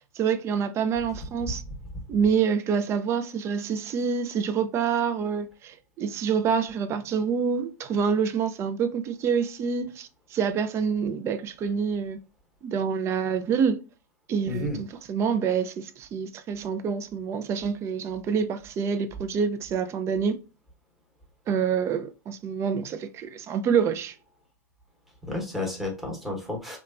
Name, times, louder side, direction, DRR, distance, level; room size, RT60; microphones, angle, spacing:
voice 1, 0.2-1.6 2.1-12.2 12.6-13.8 14.3-20.4 21.5-24.1, right 6 dB, 30° right, 0.4 m, -27 dB
voice 2, 14.5-14.8 25.2-26.8, left 2 dB, ahead, 1.0 m, -31 dB
2.9 x 2.2 x 2.4 m
hypercardioid pair, 115°, 9 cm